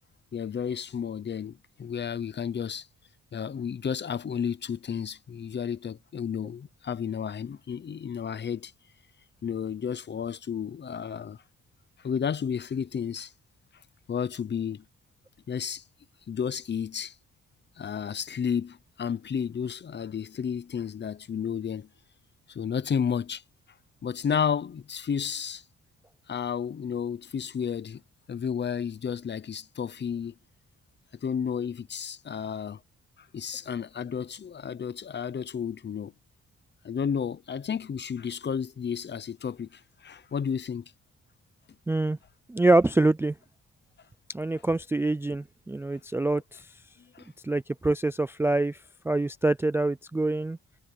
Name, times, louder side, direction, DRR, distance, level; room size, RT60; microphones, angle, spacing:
voice 1, 0.3-2.9 3.3-8.7 9.4-11.4 12.0-13.3 14.1-14.8 15.5-15.8 16.3-17.1 17.8-21.9 22.5-23.4 24.0-25.6 26.3-28.0 28.3-30.3 31.2-32.8 33.3-36.1 36.8-40.8 47.1-47.3, left 7 dB, 35° left, 0.8 m, -32 dB
voice 2, 41.9-42.2 42.5-43.3 44.3-46.6 47.4-48.8 49.1-50.6, right 2 dB, 10° right, 0.3 m, -25 dB
wide cardioid pair, 145°, 29 cm